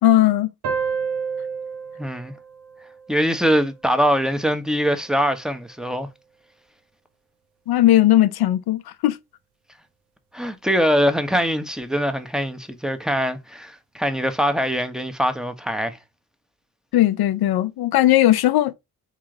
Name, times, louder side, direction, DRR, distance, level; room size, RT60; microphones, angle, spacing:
voice 1, 0.0-0.5 7.7-9.2 16.9-18.7, left 14 dB, 70° left, 0.6 m, -17 dB
sound 1, 0.6-3.8, right 6 dB, 85° right, 1.0 m, -30 dB
voice 2, 2.0-2.3 3.1-6.1 10.3-16.0, equal, ahead, 1.0 m, -22 dB
3.8 x 3.1 x 3.9 m
supercardioid pair, 50°, 39 cm